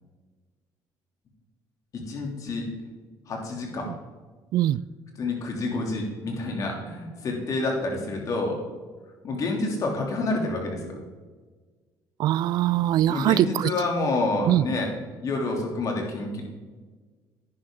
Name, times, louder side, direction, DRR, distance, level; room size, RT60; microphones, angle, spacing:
voice 1, 1.9-2.7 3.3-3.9 5.2-8.6 9.2-11.0 13.1-14.9 15.2-16.4, left 2 dB, 50° left, 1 dB, 2.9 m, -28 dB
voice 2, 12.2-13.7 14.5-14.6, right 13 dB, 65° right, 19 dB, 0.3 m, -22 dB
11.0 x 9.9 x 3.8 m, 1.4 s
cardioid pair, 100°, 7 cm